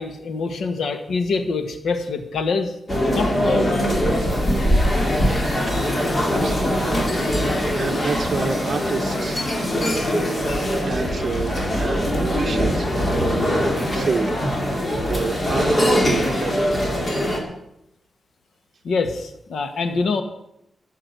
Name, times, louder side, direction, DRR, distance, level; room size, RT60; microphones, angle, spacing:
voice 1, 0.0-2.7 3.1-3.8 18.8-20.2, left 4 dB, 80° left, 7 dB, 1.8 m, -25 dB
sound 1, 2.9-17.4, equal, 25° left, 2.7 m, -22 dB
voice 2, 6.3-6.9 7.4-9.4 10.5-14.3 14.8-16.6, right 4 dB, 35° right, 2 dB, 1.2 m, -29 dB
14.0 x 6.7 x 9.4 m, 0.81 s
wide cardioid pair, 175°, 0 cm